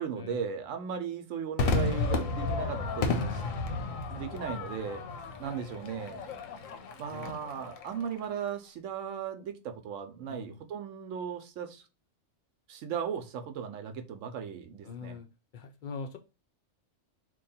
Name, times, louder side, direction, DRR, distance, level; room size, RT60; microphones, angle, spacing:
voice 1, 0.0-3.3 4.1-5.0 5.4-6.2 7.0-11.8 12.7-15.2, right 7 dB, 80° right, 1.0 m, -37 dB
Crowd / Fireworks, 1.6-8.1, left 3 dB, 90° left, 1.1 m, -32 dB
voice 2, 3.0-3.5 7.1-7.3 10.3-10.6 14.8-15.3 15.5-16.2, left 5 dB, 60° left, 0.5 m, -42 dB
2.9 x 2.3 x 4.1 m
omnidirectional pair, 1.4 m